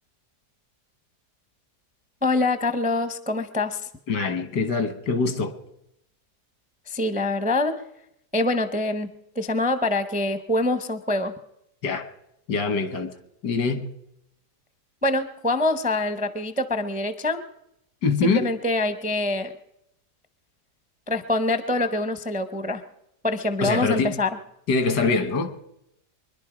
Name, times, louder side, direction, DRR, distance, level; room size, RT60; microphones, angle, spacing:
voice 1, 2.2-3.8 6.9-7.8 8.3-9.1 9.4-11.3 15.0-17.4 18.2-19.5 21.1-22.8 23.2-24.4, left 2 dB, 10° right, 10 dB, 0.4 m, -25 dB
voice 2, 4.1-5.5 11.8-12.1 12.5-13.1 13.4-13.9 18.0-18.5 23.6-24.2 24.7-25.5, left 4 dB, 90° left, 9 dB, 2.0 m, -24 dB
24.0 x 11.0 x 5.0 m, 0.81 s
omnidirectional pair, 1.8 m